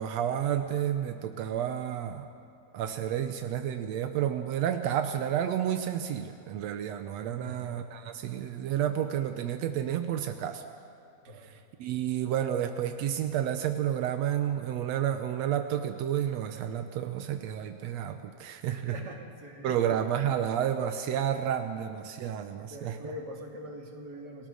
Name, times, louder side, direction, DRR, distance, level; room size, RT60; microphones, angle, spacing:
voice 1, 0.0-2.3 2.7-10.6 11.4-19.0 19.6-23.1, right 10 dB, 85° right, 7 dB, 1.5 m, -31 dB
voice 2, 7.3-7.6 11.3-11.6 18.7-19.7 22.6-24.5, equal, 30° right, 0 dB, 2.8 m, -43 dB
29.5 x 20.0 x 6.4 m, 2.6 s
omnidirectional pair, 4.3 m